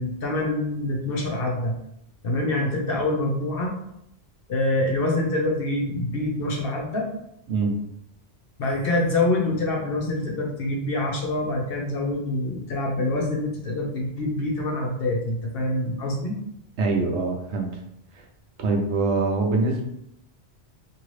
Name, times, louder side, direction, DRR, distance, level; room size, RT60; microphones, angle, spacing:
voice 1, 0.0-1.7 2.2-3.7 4.5-7.1 8.6-16.4, left 2 dB, 60° left, -1 dB, 0.9 m, -25 dB
voice 2, 16.8-17.8 18.1-18.3 18.6-19.8, right 3 dB, 85° right, 2 dB, 1.0 m, -24 dB
2.8 x 2.7 x 3.1 m, 0.76 s
omnidirectional pair, 1.1 m